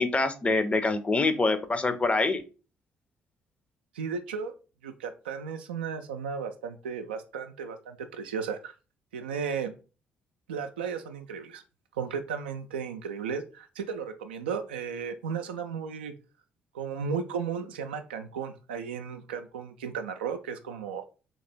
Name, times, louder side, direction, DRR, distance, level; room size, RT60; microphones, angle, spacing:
voice 1, 0.0-2.4, left 3 dB, 25° left, 10 dB, 0.6 m, -25 dB
voice 2, 3.9-4.5 4.8-8.7 9.1-9.7 10.5-11.6 11.9-16.1 16.7-21.0, right 6 dB, 75° right, 7 dB, 0.3 m, -34 dB
3.2 x 2.9 x 4.0 m, 0.34 s
figure-of-eight pair, 45°, 5 cm